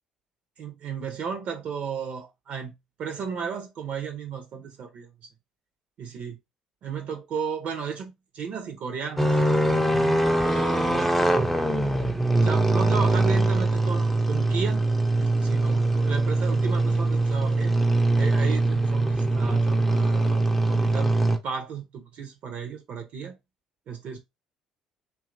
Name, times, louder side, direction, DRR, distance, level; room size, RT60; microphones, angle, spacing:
voice 1, 0.6-2.7 3.0-5.1 6.0-6.4 6.8-9.4 9.6-11.1 12.4-14.8 15.2-17.7 18.1-21.1 21.4-23.4 23.9-24.2, right 6 dB, 55° right, 0.6 m, -34 dB
sound 1, 9.2-21.4, right 2 dB, 5° left, 0.5 m, -22 dB
2.8 x 2.3 x 2.5 m
figure-of-eight pair, 55°, 3 cm